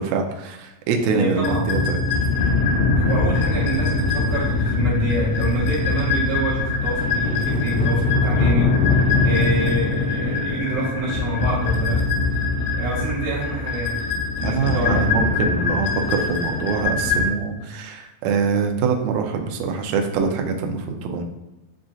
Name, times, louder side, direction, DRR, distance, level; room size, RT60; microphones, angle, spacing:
voice 1, 0.0-2.0 9.1-9.3 14.4-21.2, right 5 dB, 90° right, 3 dB, 1.5 m, -24 dB
voice 2, 1.1-1.7 3.0-12.1 12.7-14.0 14.4-15.1, right 2 dB, 75° right, -8 dB, 2.3 m, -27 dB
sound 1, 1.4-17.3, left 3 dB, 85° left, 1.5 m, -22 dB
7.4 x 2.5 x 2.3 m, 1.1 s
omnidirectional pair, 3.8 m